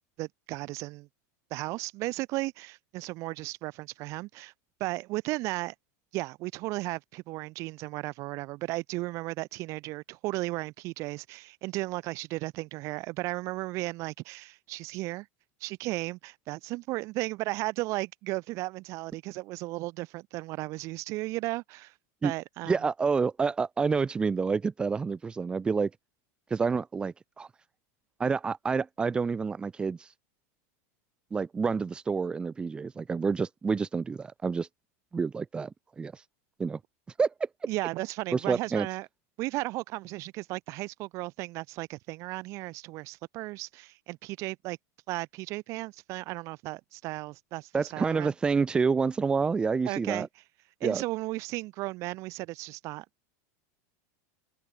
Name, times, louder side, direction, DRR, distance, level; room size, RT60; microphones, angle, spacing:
voice 1, 0.2-1.1 1.5-4.5 4.8-5.7 6.1-15.3 15.6-21.9 22.2-22.8 37.7-39.1 39.4-44.8 45.1-48.3 49.8-50.3 50.8-53.3, right 21 dB, 35° right, 4.5 m, -35 dB
voice 2, 22.7-25.9 26.5-27.5 28.2-30.1 31.3-34.7 35.1-36.2 36.6-36.8 37.2-37.5 38.3-38.9 47.7-50.3 50.8-51.0, right 5 dB, 10° right, 3.6 m, -28 dB
open air
supercardioid pair, 175°, 8 cm